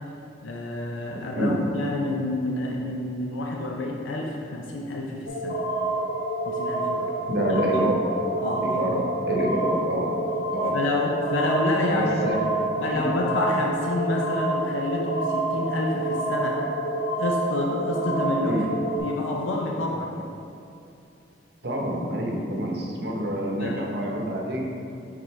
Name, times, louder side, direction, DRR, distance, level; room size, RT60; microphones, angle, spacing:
voice 1, 0.4-5.6 6.5-7.1 7.7-7.8 8.4-9.0 10.7-12.4 12.8-16.6 17.2-18.7 19.0-20.2 23.6-23.9, left 2 dB, 85° left, 0 dB, 0.5 m, -28 dB
sound 1, 5.3-19.0, right 2 dB, 50° left, 1.2 m, -28 dB
voice 2, 7.3-8.0 8.6-10.1 10.5-10.7 11.9-13.2 18.5-18.7 21.6-24.6, right 1 dB, 60° right, -1 dB, 0.9 m, -27 dB
9.3 x 3.8 x 3.2 m, 2.7 s
head